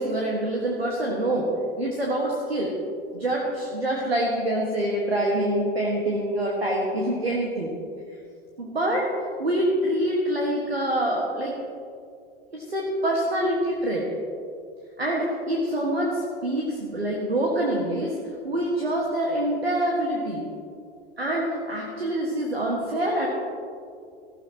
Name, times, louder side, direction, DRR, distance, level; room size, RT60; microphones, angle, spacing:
voice 1, 0.0-1.5 1.8-2.7 3.1-7.7 8.6-9.1 9.4-11.6 12.5-14.1 15.0-18.2 18.4-20.4 21.2-23.3, right 1 dB, 85° right, -2 dB, 1.9 m, -25 dB
19.0 x 14.5 x 3.1 m, 2.4 s
figure-of-eight pair, 80°, 30 cm